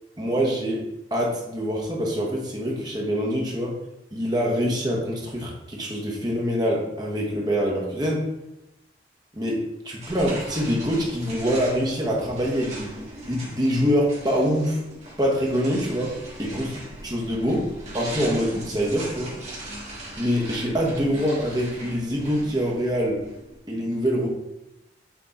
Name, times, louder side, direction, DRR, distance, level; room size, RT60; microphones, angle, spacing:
voice 1, 0.2-0.8 1.1-3.7 4.1-8.2 9.3-9.6 9.8-12.9 13.2-14.8 15.2-16.1 16.4-16.8 17.0-17.6 17.9-19.3 20.2-23.2 23.7-24.3, equal, 20° right, -2 dB, 1.2 m, -25 dB
sound 1, 10.0-23.6, right 1 dB, 40° right, 1.7 m, -39 dB
6.1 x 3.7 x 4.1 m, 0.90 s
head